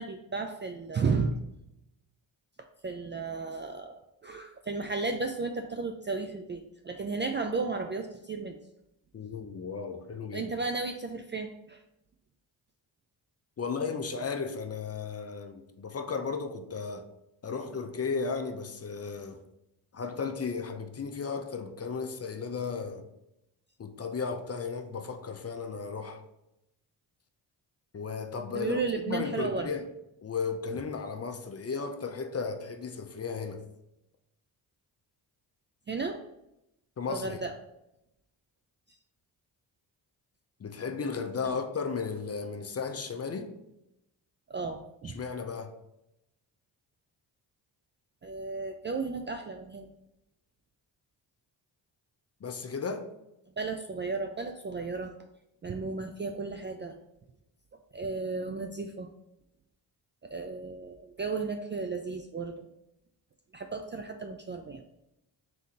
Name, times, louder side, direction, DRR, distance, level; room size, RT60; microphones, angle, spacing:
voice 1, 0.0-1.4 2.8-4.0 4.2-8.6 10.3-11.8 28.5-29.7 35.9-36.2 37.1-37.5 41.4-41.6 44.5-45.2 48.2-49.9 53.6-55.1 55.6-57.0 57.9-59.1 60.3-62.7 63.5-64.8, right 4 dB, 25° right, 0.3 m, -34 dB
voice 2, 9.1-10.5 13.6-17.0 17.4-19.4 19.9-23.1 23.8-26.2 27.9-29.9 30.2-33.6 37.0-37.4 40.6-43.5 45.0-45.7 52.4-53.1, left 5 dB, 30° left, 0.6 m, -35 dB
3.5 x 2.9 x 3.9 m
supercardioid pair, 45°, 48 cm